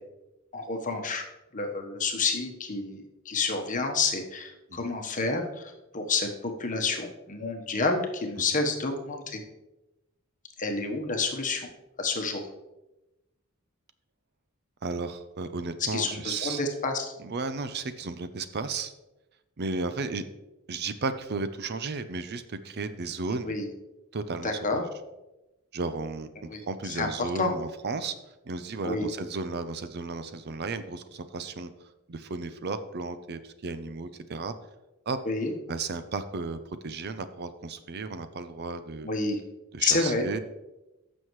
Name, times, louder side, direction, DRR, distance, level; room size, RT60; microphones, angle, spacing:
voice 1, 0.5-1.2 1.5-9.4 10.6-11.7 12.0-12.4 15.9-17.1 23.3-23.7 24.4-24.8 26.5-27.5 28.8-29.1 35.3-35.5 39.0-39.4 39.8-40.2, left 3 dB, 40° left, 3 dB, 1.1 m, -29 dB
voice 2, 14.8-16.6 17.2-18.9 19.6-20.2 20.7-23.6 24.1-24.9 25.7-28.1 28.4-31.7 32.1-34.5 35.1-35.2 35.7-36.6 36.8-39.1 39.7-40.4, right 3 dB, 50° right, 11 dB, 0.6 m, -34 dB
14.5 x 6.3 x 3.1 m, 1.0 s
head